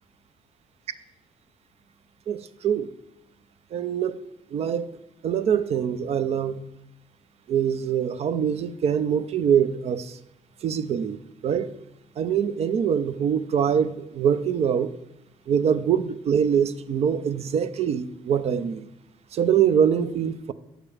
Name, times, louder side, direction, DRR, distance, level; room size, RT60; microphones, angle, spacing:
voice 1, 2.3-2.9 3.7-4.2 4.5-4.9 5.2-6.6 7.5-10.2 10.6-11.7 12.2-15.0 15.5-18.9 19.3-20.5, right 8 dB, 60° right, 0.6 m, -24 dB
9.0 x 6.6 x 4.8 m
supercardioid pair, 70°, 12 cm